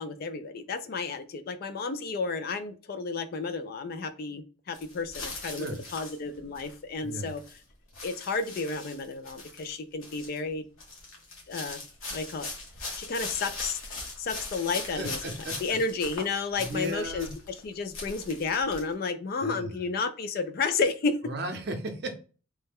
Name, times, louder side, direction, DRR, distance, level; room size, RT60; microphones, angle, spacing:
voice 1, 0.0-5.7 5.9-7.4 8.0-10.6 11.5-11.8 12.1-12.5 13.0-13.8 14.2-15.2 15.6-17.3 17.6-21.2, left 4 dB, 45° left, 11 dB, 0.3 m, -31 dB
sound 1, 4.7-6.8 7.2-7.6 7.9-9.8 10.0-10.4 10.8-17.7 17.9-18.9, left 3 dB, 90° left, 1.1 m, -40 dB
voice 2, 5.4-5.8 7.0-7.3 15.0-15.5 16.6-17.3 19.4-19.8 21.2-22.1, right 1 dB, 50° right, 6 dB, 0.6 m, -35 dB
3.2 x 2.1 x 3.4 m, 0.36 s
head